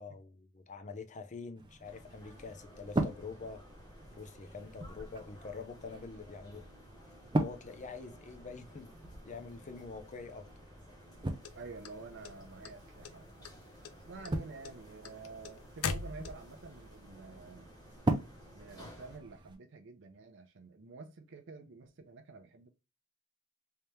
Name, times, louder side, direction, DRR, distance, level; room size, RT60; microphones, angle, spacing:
voice 1, 0.0-3.6 4.1-6.6 7.4-9.0 9.2-10.5, left 4 dB, 35° left, 0.5 m, -45 dB
sound 1, 1.6-19.6, right 1 dB, 20° right, 0.5 m, -41 dB
sound 2, 1.8-19.2, equal, 20° left, 1.2 m, -56 dB
sound 3, 11.4-12.7 13.0-13.6 13.8-16.7, left 5 dB, 80° left, 0.5 m, -39 dB
voice 2, 11.5-13.5 14.1-17.7 18.5-22.7, right 3 dB, 60° right, 0.6 m, -49 dB
3.4 x 2.8 x 3.2 m
head